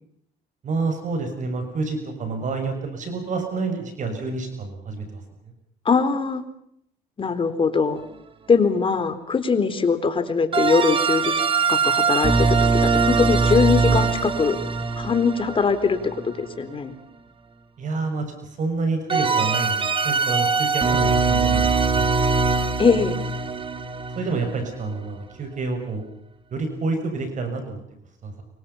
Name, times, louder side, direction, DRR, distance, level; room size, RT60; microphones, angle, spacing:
voice 1, 0.6-5.2 17.8-22.1 24.1-26.0 26.5-27.8 28.2-28.3, right 3 dB, 45° right, 6 dB, 6.8 m, -28 dB
voice 2, 5.9-6.4 7.2-8.0 8.5-11.3 11.7-14.6 15.0-16.9 22.8-23.2, left 5 dB, 30° left, 10 dB, 3.9 m, -21 dB
sound 1, 10.5-16.5 19.1-24.9, right 4 dB, 30° right, 2.2 m, -22 dB
29.5 x 24.5 x 5.7 m, 0.73 s
cardioid pair, 110°, 17 cm